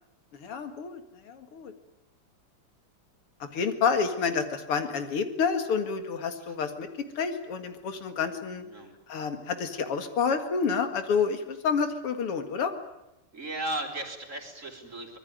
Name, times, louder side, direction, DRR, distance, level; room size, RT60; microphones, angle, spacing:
voice 1, 0.4-1.7 3.5-6.9 7.2-8.6 9.1-12.7, left 6 dB, 85° left, 8 dB, 2.9 m, -29 dB
voice 2, 8.6-8.9 13.3-15.2, right 1 dB, 35° right, 3 dB, 3.8 m, -36 dB
25.0 x 21.0 x 9.5 m, 0.89 s
omnidirectional pair, 2.4 m